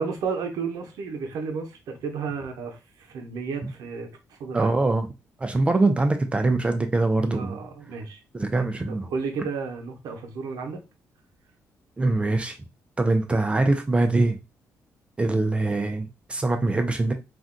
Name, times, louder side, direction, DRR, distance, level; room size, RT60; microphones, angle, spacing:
voice 1, 0.0-4.1 4.4-4.7 7.3-8.2 8.9-10.8, right 5 dB, 80° right, 0.8 m, -32 dB
voice 2, 4.5-5.1 5.4-7.6 8.3-9.1 12.0-12.6 13.0-14.4 15.2-17.1, right 2 dB, 20° right, 0.4 m, -23 dB
2.5 x 2.2 x 3.7 m
cardioid pair, 130°, 6 cm